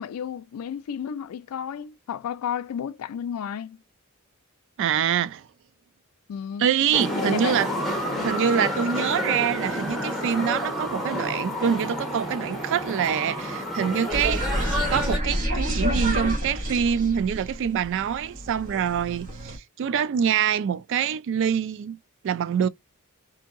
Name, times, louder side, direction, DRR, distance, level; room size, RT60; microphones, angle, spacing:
voice 1, 0.0-3.8 6.3-6.7 7.1-7.6 8.0-8.3, left 8 dB, 80° left, 0.3 m, -32 dB
voice 2, 4.8-5.5 6.6-7.7 8.2-14.4 14.9-22.0 22.2-22.7, right 8 dB, 60° right, 0.3 m, -25 dB
sound 1, 6.9-15.2, equal, ahead, 1.0 m, -29 dB
sound 2, 14.1-19.6, equal, 40° right, 1.1 m, -29 dB
2.8 x 2.6 x 2.4 m
head